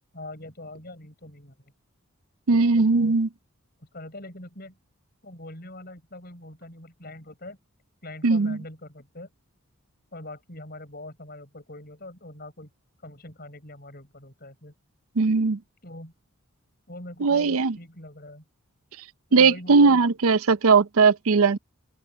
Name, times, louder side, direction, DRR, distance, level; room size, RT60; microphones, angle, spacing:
voice 1, 0.1-1.7 2.5-3.2 3.8-4.8 5.2-7.6 8.0-9.3 10.1-12.7 13.0-14.7 15.8-16.1 16.9-18.4 19.3-20.0, left 1 dB, 45° left, 7.7 m, -42 dB
voice 2, 2.5-3.3 8.2-8.6 15.2-15.6 17.2-17.8 19.3-21.6, right 4 dB, 75° right, 0.6 m, -19 dB
open air
head